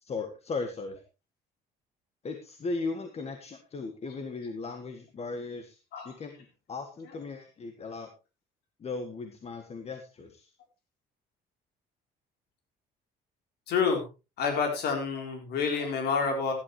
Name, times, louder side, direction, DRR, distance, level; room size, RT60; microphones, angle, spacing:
voice 1, 0.0-1.0 2.2-5.8 6.0-8.1 8.8-10.5, left 3 dB, 40° left, 7 dB, 1.7 m, -37 dB
voice 2, 13.7-14.0 14.4-16.5, left 5 dB, 75° left, 3 dB, 3.8 m, -28 dB
16.0 x 11.0 x 3.2 m, 0.29 s
cardioid pair, 110°, 17 cm